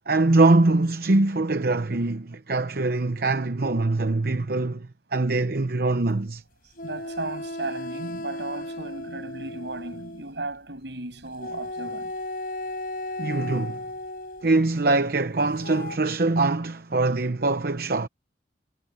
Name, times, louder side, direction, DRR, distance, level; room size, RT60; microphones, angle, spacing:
voice 1, 0.1-6.4 13.2-13.8 14.4-18.1, right 2 dB, 55° right, 0.9 m, -23 dB
sound 1, 6.8-10.3 11.4-14.5 15.6-16.0, left 1 dB, 55° left, 4.2 m, -35 dB
voice 2, 6.8-12.1, right 2 dB, 75° right, 7.9 m, -35 dB
head